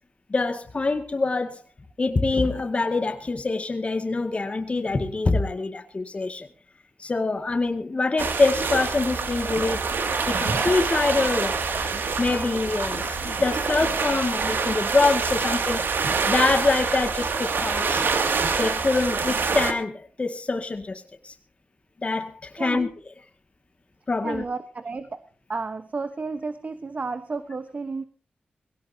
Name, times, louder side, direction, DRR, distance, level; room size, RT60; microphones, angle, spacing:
voice 1, 0.3-1.6 2.0-6.5 7.0-9.8 10.3-11.7 12.2-15.8 16.3-18.0 18.6-21.3 22.0-22.9 24.1-24.4, left 3 dB, 35° left, 2.1 m, -25 dB
sound 1, 8.2-19.7, right 4 dB, 85° right, 2.5 m, -26 dB
voice 2, 22.6-22.9 24.2-25.2 25.5-28.0, right 4 dB, 45° right, 1.2 m, -32 dB
21.5 x 17.5 x 2.9 m
wide cardioid pair, 120°, 3 cm